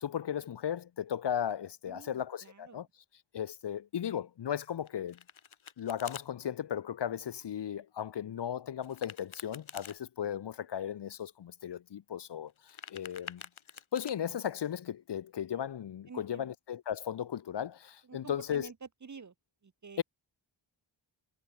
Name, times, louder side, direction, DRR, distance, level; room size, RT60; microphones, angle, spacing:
voice 1, 0.0-2.9 3.3-5.2 5.8-13.4 13.9-18.7 20.0-20.1, left 9 dB, 60° left, 0.5 m, -36 dB
voice 2, 1.9-2.8 16.1-16.5 18.0-19.3 19.6-20.0, right 5 dB, 40° right, 0.7 m, -49 dB
Domestic sounds home sounds, 4.9-6.3 8.8-10.0 12.5-14.1, left 8 dB, 80° left, 0.9 m, -48 dB
wide cardioid pair, 65°, 47 cm